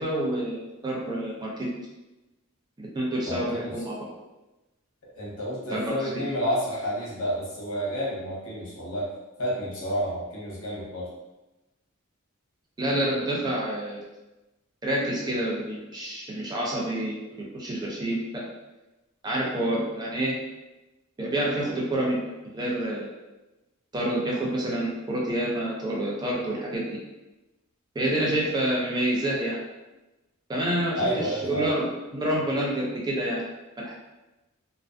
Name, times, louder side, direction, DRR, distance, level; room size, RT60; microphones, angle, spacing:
voice 1, 0.0-1.7 2.8-4.0 5.7-6.2 12.8-14.0 14.8-18.4 19.2-20.4 21.2-22.2 22.5-23.1 23.9-26.8 28.0-29.6 30.5-31.8 32.1-33.4 33.8-33.9, right 1 dB, 20° right, -4 dB, 0.4 m, -28 dB
voice 2, 3.3-3.7 5.1-9.1 9.4-11.1 30.9-31.7, equal, 70° left, -6 dB, 0.9 m, -30 dB
2.4 x 2.1 x 2.4 m, 1.0 s
head